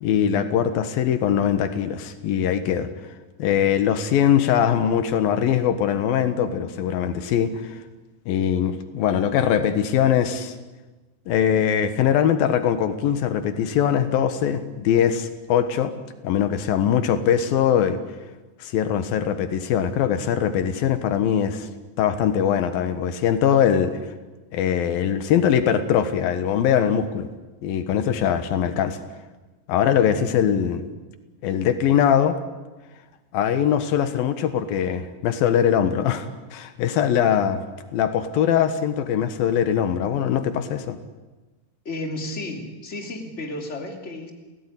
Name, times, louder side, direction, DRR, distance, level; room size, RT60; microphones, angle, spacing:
voice 1, 0.0-2.9 3.4-7.8 8.3-10.6 11.3-15.9 16.2-18.0 18.6-21.7 22.0-24.0 24.5-27.3 27.6-29.0 29.7-30.9 31.4-32.4 33.3-37.6 37.9-41.0, left 9 dB, 85° left, 10 dB, 3.2 m, -21 dB
voice 2, 41.9-44.3, left 1 dB, 20° left, 3 dB, 3.3 m, -32 dB
29.5 x 18.0 x 10.0 m, 1.2 s
omnidirectional pair, 4.1 m